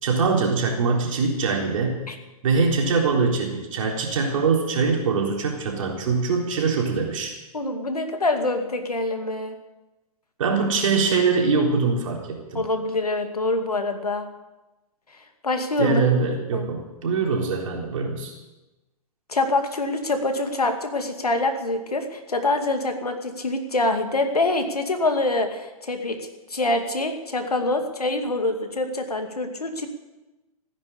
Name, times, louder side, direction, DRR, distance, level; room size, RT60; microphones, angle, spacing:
voice 1, 0.0-2.0 2.4-7.4 10.4-12.6 15.8-18.3, right 4 dB, 60° right, 0 dB, 3.9 m, -23 dB
voice 2, 7.5-9.6 12.5-14.2 15.4-16.0 16.5-16.7 19.3-26.2 26.5-29.9, left 2 dB, 80° left, 6 dB, 2.3 m, -25 dB
16.0 x 9.9 x 8.5 m, 1.1 s
figure-of-eight pair, 110°, 19 cm